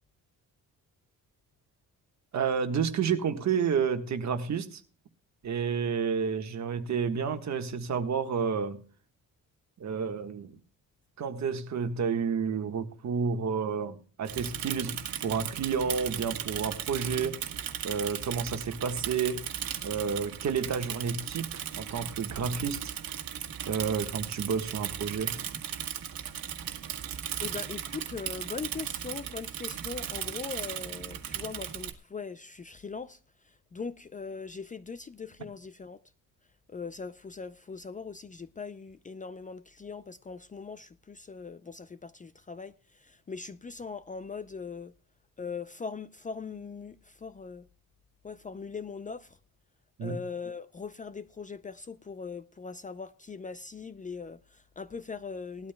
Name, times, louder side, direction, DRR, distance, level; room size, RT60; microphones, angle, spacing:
voice 1, 2.3-4.8 5.4-8.8 9.8-10.6 11.2-17.4 17.8-19.4 19.8-22.9 23.6-25.4 50.0-50.2, right 6 dB, 55° right, 1.5 m, -30 dB
Bicycle / Mechanisms, 14.2-31.9, right 10 dB, 80° right, 1.6 m, -37 dB
voice 2, 27.4-36.0 36.7-44.9 45.4-47.7 48.2-49.4 50.0-55.7, left 5 dB, 25° left, 0.4 m, -40 dB
19.5 x 12.5 x 2.2 m
wide cardioid pair, 155°, 34 cm